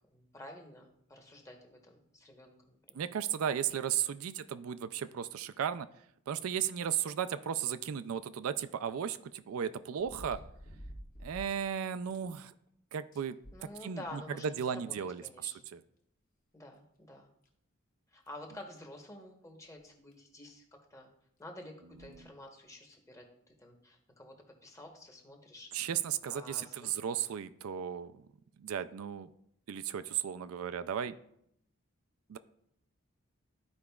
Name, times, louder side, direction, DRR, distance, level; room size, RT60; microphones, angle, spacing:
voice 1, 0.1-3.0 13.5-14.9 15.2-15.7 16.5-17.3 18.1-20.6 20.9-21.1 21.4-21.7 22.0-23.2 23.6-24.3 24.6-25.7 26.3-26.9, left 1 dB, 15° left, 2 dB, 1.0 m, -50 dB
voice 2, 2.9-5.9 6.3-10.4 11.2-12.5 12.9-13.4 13.8-15.8 22.2-22.3 25.7-28.2 28.6-29.3 29.7-31.1 32.3-32.4, right 8 dB, 75° right, 11 dB, 0.4 m, -35 dB
sound 1, 8.0-8.1 10.0-11.7 12.1-12.2 12.7-12.8 13.1-14.2 15.2-15.3 16.8-16.9 17.4-17.5 18.3-18.5 19.8-19.9 20.1-20.2 21.9-22.2 22.9-23.0, equal, 40° left, 1.1 m, -49 dB
13.0 x 4.8 x 2.3 m, 0.73 s
head